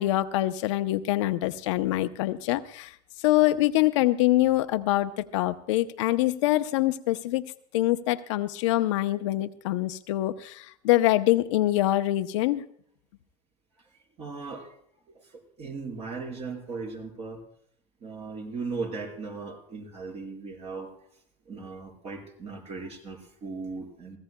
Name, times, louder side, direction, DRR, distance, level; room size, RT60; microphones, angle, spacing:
voice 1, 0.0-2.9 3.2-7.4 7.7-12.6, left 16 dB, 85° left, 10 dB, 0.7 m, -24 dB
voice 2, 14.2-14.7 15.1-17.4 18.0-20.9 21.5-24.2, right 4 dB, 45° right, 2 dB, 4.3 m, -37 dB
23.0 x 16.0 x 2.2 m, 0.65 s
supercardioid pair, 110°, 15 cm